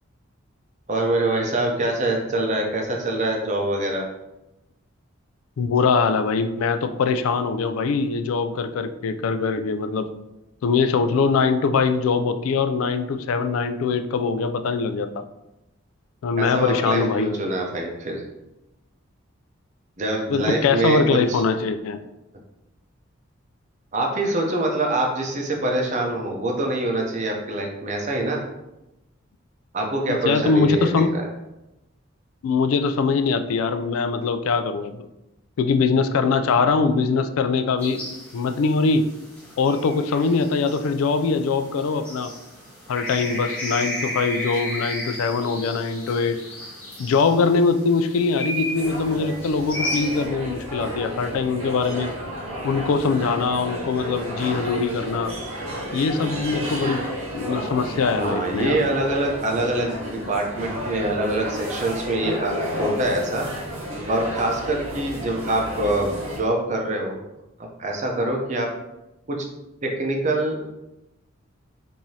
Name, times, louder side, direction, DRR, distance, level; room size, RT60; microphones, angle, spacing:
voice 1, 0.9-4.1 16.4-18.2 20.0-21.4 23.9-28.4 29.7-31.3 58.2-63.4 64.1-67.2 67.8-68.7 69.3-69.4 69.8-70.6, right 1 dB, 35° right, 1 dB, 0.6 m, -25 dB
voice 2, 5.6-10.1 10.6-15.1 16.2-17.3 20.3-22.0 30.1-31.1 32.4-35.1 35.6-38.0 38.3-39.0 39.6-42.3 42.9-46.4 47.0-52.1 52.6-55.3 55.9-58.8, left 4 dB, 85° left, 9 dB, 0.3 m, -22 dB
sound 1, 37.8-50.3, equal, 10° left, 1.5 m, -34 dB
sound 2, 48.7-66.4, equal, 85° right, 1.0 m, -32 dB
4.6 x 2.6 x 2.7 m, 0.94 s
head